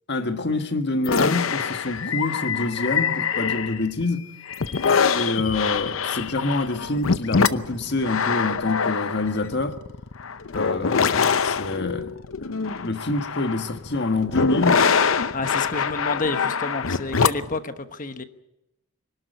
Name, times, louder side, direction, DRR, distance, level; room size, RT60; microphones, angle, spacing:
voice 1, 0.1-4.3 5.2-9.8 10.5-14.8, left 2 dB, 55° left, 1.6 m, -26 dB
sound 1, 1.0-4.0 4.5-17.6, left 5 dB, 85° left, 0.7 m, -24 dB
voice 2, 15.3-18.2, left 3 dB, 40° left, 1.2 m, -29 dB
25.0 x 12.0 x 9.3 m
head